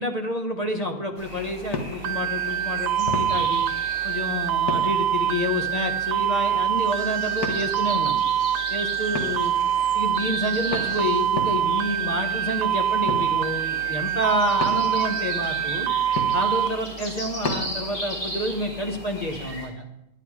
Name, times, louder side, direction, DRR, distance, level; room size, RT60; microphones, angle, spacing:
voice 1, 0.0-3.6 4.0-8.1 8.7-9.6 9.9-15.9 16.3-19.7, left 1 dB, 25° left, 2 dB, 1.4 m, -29 dB
sound 1, 0.6-18.1, left 3 dB, 90° left, 2.0 m, -37 dB
sound 2, 1.2-19.7, right 1 dB, 55° left, 4.3 m, -37 dB
sound 3, 2.0-16.7, right 10 dB, 70° right, 1.0 m, -25 dB
11.5 x 10.5 x 4.9 m, 0.88 s
omnidirectional pair, 1.6 m